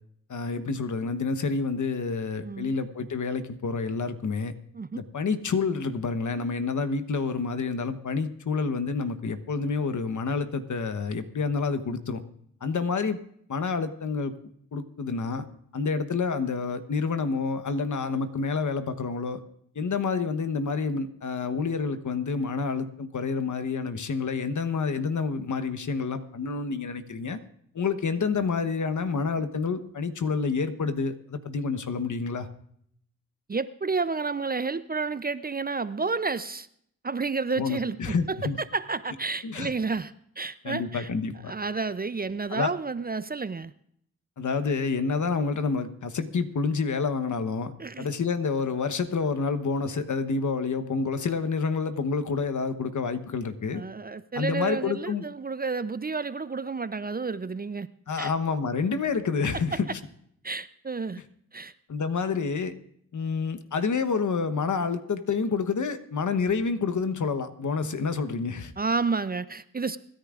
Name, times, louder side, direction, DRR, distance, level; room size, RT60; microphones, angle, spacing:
voice 1, 0.3-4.5 4.9-12.2 12.6-13.2 13.5-14.3 14.7-15.4 15.7-19.4 19.7-27.4 27.7-32.5 37.6-38.6 39.4-39.7 40.6-41.5 42.5-42.7 44.4-53.8 54.3-55.3 58.1-59.9 61.9-62.7 63.1-68.7, left 4 dB, 60° left, 10 dB, 1.1 m, -28 dB
voice 2, 33.5-36.7 37.0-38.4 38.7-41.1 41.5-43.7 47.8-48.1 53.7-57.9 58.2-58.3 59.7-59.8 60.4-61.2 61.5-61.7 67.8-68.0 68.8-70.0, right 4 dB, 25° right, 15 dB, 0.5 m, -30 dB
25.5 x 10.5 x 2.5 m, 0.69 s
cardioid pair, 45°, 34 cm